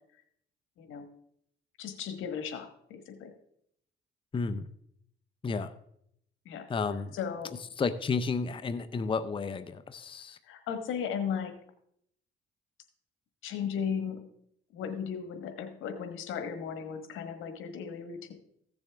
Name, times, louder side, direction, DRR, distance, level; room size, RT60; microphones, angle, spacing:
voice 1, 0.8-1.1 1.8-3.3 6.4-6.7 7.1-7.5 10.4-11.5 13.4-14.2 14.7-18.3, left 7 dB, 85° left, 7 dB, 1.4 m, -36 dB
voice 2, 4.3-4.7 5.4-5.7 6.7-7.1 7.8-10.4, left 4 dB, 25° left, 11 dB, 0.6 m, -32 dB
15.0 x 7.0 x 3.4 m, 0.72 s
cardioid pair, 90°, 20 cm